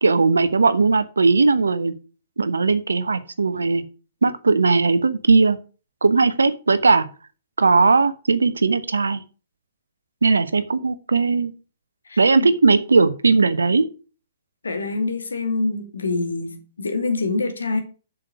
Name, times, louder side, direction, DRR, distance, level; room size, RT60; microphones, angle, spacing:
voice 1, 0.0-1.9 2.4-3.8 4.2-5.6 6.0-7.0 7.6-9.2 10.2-11.5 12.2-13.9, right 4 dB, 75° right, 1.0 m, -18 dB
voice 2, 12.0-12.5 14.6-17.8, left 3 dB, 70° left, 2.3 m, -25 dB
7.5 x 6.4 x 6.2 m
figure-of-eight pair, 115°, 0 cm